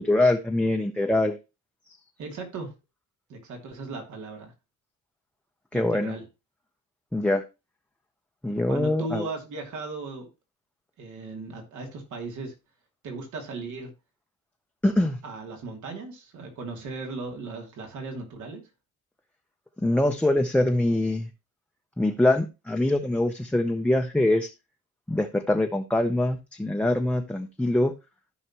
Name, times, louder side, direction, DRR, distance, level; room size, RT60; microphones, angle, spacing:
voice 1, 0.0-1.4 5.7-6.1 7.1-7.4 8.4-9.2 14.8-15.2 19.8-21.3 22.0-24.5 25.1-27.9, left 1 dB, 5° left, 0.6 m, -24 dB
voice 2, 2.2-2.7 3.3-4.5 5.7-6.2 8.7-10.3 11.0-12.5 13.0-13.9 15.2-18.6, right 3 dB, 75° right, 2.7 m, -37 dB
14.5 x 5.6 x 2.9 m
cardioid pair, 140°, 30 cm